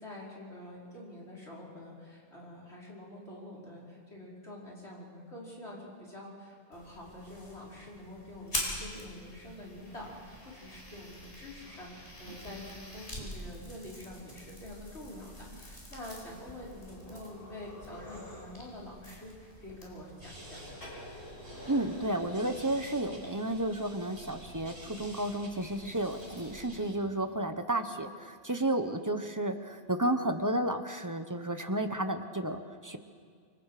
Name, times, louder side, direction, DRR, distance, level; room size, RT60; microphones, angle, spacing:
voice 1, 0.0-20.8, left 1 dB, 75° left, -5 dB, 5.6 m, -46 dB
sound 1, 6.7-26.6, equal, 60° left, 5.2 m, -45 dB
sound 2, 20.2-26.9, right 1 dB, 70° right, 5.7 m, -50 dB
voice 2, 21.7-33.0, right 1 dB, 20° right, 8 dB, 1.0 m, -32 dB
27.0 x 24.0 x 5.1 m, 2.1 s
omnidirectional pair, 1.1 m